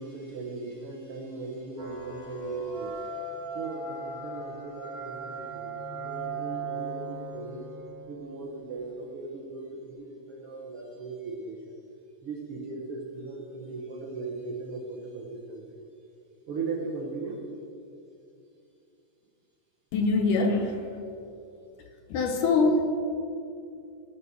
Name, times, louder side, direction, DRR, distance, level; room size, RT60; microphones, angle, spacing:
voice 1, 0.0-7.7 8.1-11.8 12.2-15.9 16.5-17.4, right 3 dB, 75° right, -2 dB, 1.3 m, -38 dB
sound 1, 1.8-9.1, right 3 dB, 40° right, 1.3 m, -38 dB
voice 2, 19.9-20.8 22.1-22.8, left 3 dB, 70° left, 4 dB, 2.2 m, -23 dB
17.5 x 6.1 x 6.3 m, 2.6 s
omnidirectional pair, 4.2 m